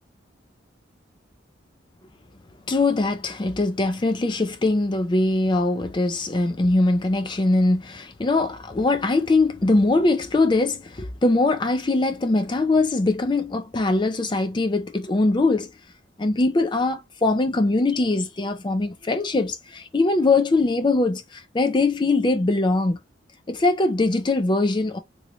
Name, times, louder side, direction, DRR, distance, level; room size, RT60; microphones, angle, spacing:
voice 1, 2.7-15.7 16.2-23.0 23.5-25.0, left 2 dB, 25° left, 0.4 m, -22 dB
3.1 x 3.0 x 2.4 m
head